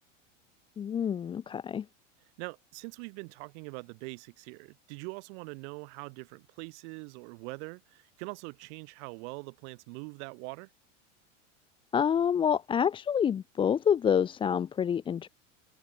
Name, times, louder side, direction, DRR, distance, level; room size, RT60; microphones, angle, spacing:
voice 1, 0.8-1.8 11.9-15.3, left 8 dB, 15° left, 0.4 m, -27 dB
voice 2, 2.4-10.7, right 32 dB, 60° right, 3.8 m, -43 dB
hypercardioid pair, 105°, 39 cm